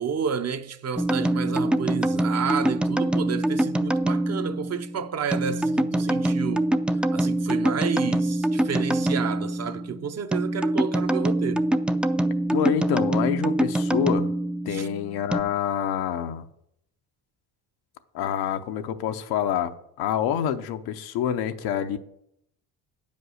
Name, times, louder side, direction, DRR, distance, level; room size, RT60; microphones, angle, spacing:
voice 1, 0.0-6.7 7.1-11.7 14.7-14.9, right 7 dB, 45° right, 0.7 m, -30 dB
sound 1, 1.0-15.4, right 1 dB, 5° right, 0.3 m, -25 dB
voice 2, 12.5-14.3 14.6-16.5 18.1-22.0, left 9 dB, 85° left, 0.8 m, -27 dB
9.3 x 5.4 x 6.3 m
cardioid pair, 90°, 36 cm